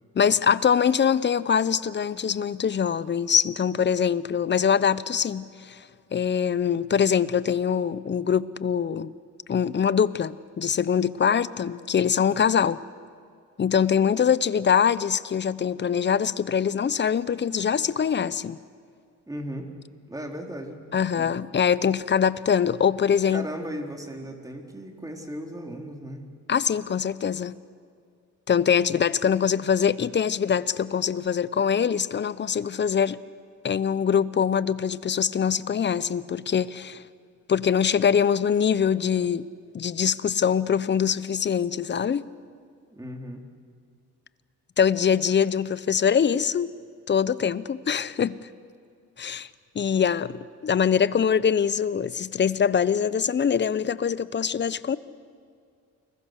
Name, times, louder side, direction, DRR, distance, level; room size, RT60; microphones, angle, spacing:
voice 1, 0.1-5.9 6.1-9.1 9.5-12.8 13.6-18.6 20.9-23.4 26.5-27.6 28.5-33.2 33.6-37.0 37.5-39.5 39.7-42.2 44.8-46.7 47.1-48.4 49.2-49.5 49.7-55.0, left 7 dB, 35° left, 17 dB, 0.9 m, -23 dB
voice 2, 19.3-19.7 20.1-20.8 21.1-21.3 23.3-26.2 42.9-43.4, equal, 10° right, 3 dB, 3.8 m, -36 dB
29.5 x 21.5 x 6.7 m, 2.3 s
cardioid pair, 90°, 30 cm